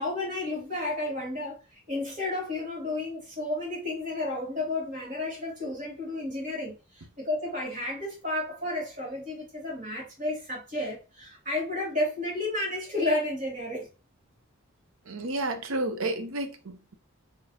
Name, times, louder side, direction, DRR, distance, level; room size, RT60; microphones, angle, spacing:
voice 1, 0.0-13.9, left 2 dB, 35° right, 2.3 m, -32 dB
voice 2, 15.1-16.9, right 2 dB, 70° right, 0.7 m, -31 dB
4.1 x 3.2 x 2.7 m
head